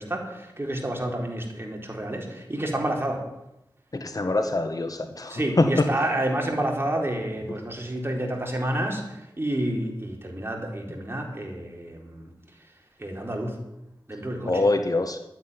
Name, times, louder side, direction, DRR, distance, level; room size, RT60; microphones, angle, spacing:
voice 1, 0.0-3.2 5.3-12.3 13.0-13.6 14.1-14.6, right 1 dB, 30° right, 1 dB, 4.0 m, -29 dB
voice 2, 3.9-5.8 14.5-15.2, left 2 dB, 50° left, 6 dB, 1.5 m, -24 dB
12.0 x 9.6 x 9.8 m, 0.91 s
wide cardioid pair, 55°, 8 cm